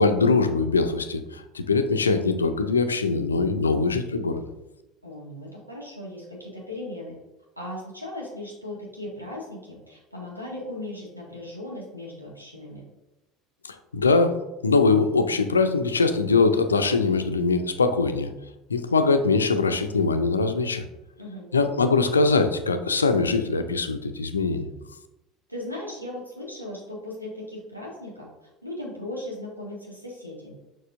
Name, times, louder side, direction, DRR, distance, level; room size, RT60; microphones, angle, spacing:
voice 1, 0.0-4.4 13.6-14.4 14.6-18.3 18.7-20.8 21.5-24.7, left 4 dB, 80° left, 9 dB, 0.5 m, -22 dB
voice 2, 5.0-7.1 7.6-12.8 21.2-21.5 25.5-30.5, left 1 dB, 90° right, -4 dB, 1.8 m, -37 dB
6.7 x 6.2 x 2.5 m, 0.97 s
figure-of-eight pair, 65°, 0 cm